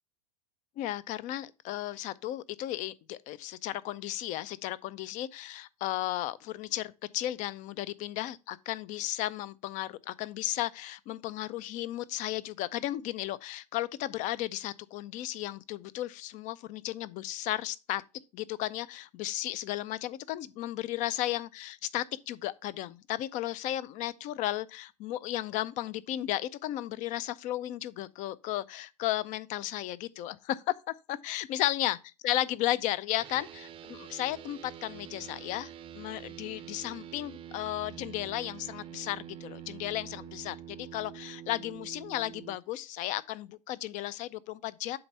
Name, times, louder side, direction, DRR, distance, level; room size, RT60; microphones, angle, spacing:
voice 1, 0.8-18.0 18.3-32.0 32.2-45.0, left 14 dB, 40° left, 0.5 m, -34 dB
sound 1, 33.2-42.6, right 10 dB, 25° right, 0.6 m, -46 dB
7.9 x 3.3 x 5.4 m
hypercardioid pair, 95°, 20 cm